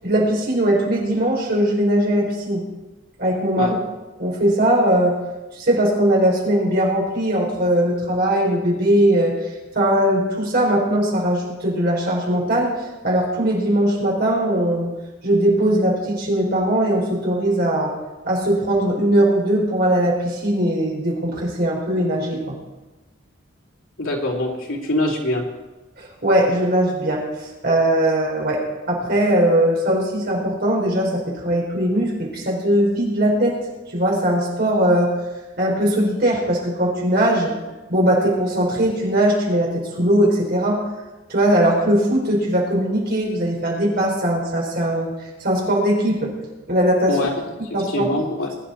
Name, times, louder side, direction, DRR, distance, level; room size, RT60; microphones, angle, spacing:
voice 1, 0.0-2.6 3.2-3.8 4.2-5.2 5.5-9.3 9.7-12.7 13.0-14.9 15.2-17.9 18.2-22.5 26.0-33.6 33.9-35.1 35.6-37.5 37.9-40.8 41.3-45.1 45.4-46.3 46.7-47.2 47.7-48.1, right 1 dB, 50° right, -2 dB, 4.5 m, -20 dB
voice 2, 24.0-25.4 47.1-47.4 47.9-48.5, left 1 dB, 85° left, -1 dB, 3.1 m, -23 dB
21.0 x 9.9 x 4.4 m, 1.1 s
head